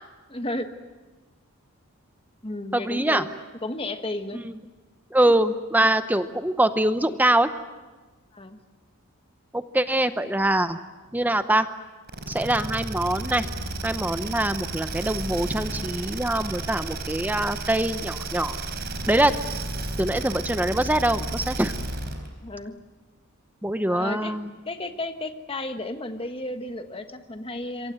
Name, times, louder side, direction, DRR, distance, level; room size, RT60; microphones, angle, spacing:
voice 1, 0.3-0.7 2.4-3.3 3.6-4.4 8.3-8.6 22.4-22.7 23.9-24.3 24.6-27.9, left 2 dB, 25° left, 7 dB, 1.4 m, -33 dB
voice 2, 2.7-3.3 4.3-4.4 5.1-7.5 9.5-10.8 11.1-11.7 12.3-13.5 13.8-18.6 19.1-19.3 19.8-21.7 23.6-24.5, right 1 dB, 10° right, 10 dB, 0.8 m, -23 dB
sound 1, 12.1-22.3, right 2 dB, 45° right, 4.0 m, -32 dB
27.0 x 23.5 x 7.9 m, 1.2 s
head